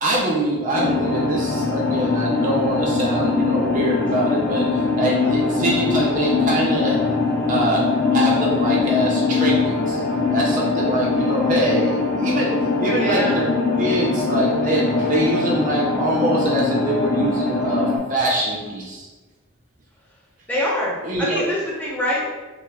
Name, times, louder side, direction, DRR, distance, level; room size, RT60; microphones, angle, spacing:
voice 1, 0.0-4.7 5.0-7.1 7.5-10.0 10.3-13.5 13.8-19.1 21.0-21.4, right 1 dB, 35° right, -3 dB, 0.4 m, -24 dB
sound 1, 0.7-18.0, left 4 dB, 45° left, 0.7 m, -22 dB
voice 2, 12.9-13.4 20.5-22.3, equal, 5° left, -6 dB, 0.7 m, -24 dB
5.7 x 2.1 x 2.3 m, 1.3 s
head